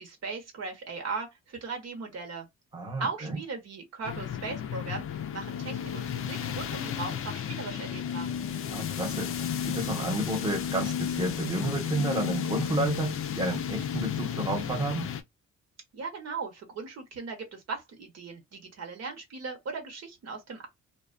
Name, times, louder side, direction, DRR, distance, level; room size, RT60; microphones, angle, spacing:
voice 1, 0.0-2.5 3.0-8.3 15.9-20.7, right 4 dB, 55° right, 1.0 m, -38 dB
voice 2, 2.7-3.4 8.7-15.1, right 1 dB, 15° right, 1.0 m, -31 dB
sound 1, 4.0-15.2, left 8 dB, 45° left, 0.5 m, -33 dB
2.3 x 2.3 x 2.4 m
cardioid pair, 90°, 30 cm